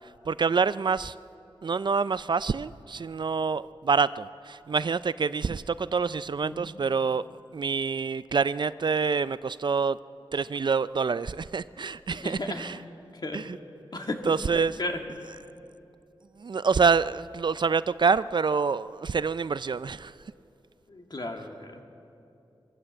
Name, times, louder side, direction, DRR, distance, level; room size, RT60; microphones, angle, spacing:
voice 1, 0.3-1.1 1.6-7.2 7.5-10.0 10.3-12.8 13.3-13.6 14.3-14.8 16.4-20.1, right 5 dB, 55° right, 16 dB, 0.4 m, -26 dB
voice 2, 12.2-12.6 13.2-13.4 13.9-14.2 14.8-15.0 20.9-21.8, left 2 dB, 50° left, 3 dB, 2.0 m, -34 dB
23.0 x 14.5 x 7.9 m, 2.7 s
wide cardioid pair, 85°, 9 cm